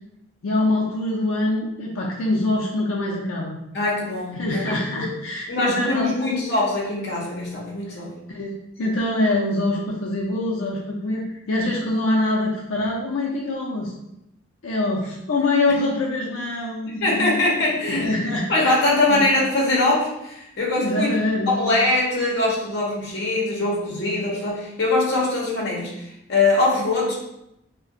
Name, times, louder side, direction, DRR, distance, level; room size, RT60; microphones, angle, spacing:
voice 1, 0.4-3.6 4.4-6.4 8.3-13.9 14.6-17.4 17.8-18.8 19.1-19.2 20.8-21.7, left 2 dB, 80° left, -3 dB, 0.5 m, -24 dB
voice 2, 3.7-4.7 5.0-5.1 5.5-8.1 17.0-18.1 18.5-21.1 21.5-27.1, left 2 dB, 55° left, -3 dB, 0.8 m, -22 dB
2.4 x 2.2 x 3.7 m, 0.84 s
head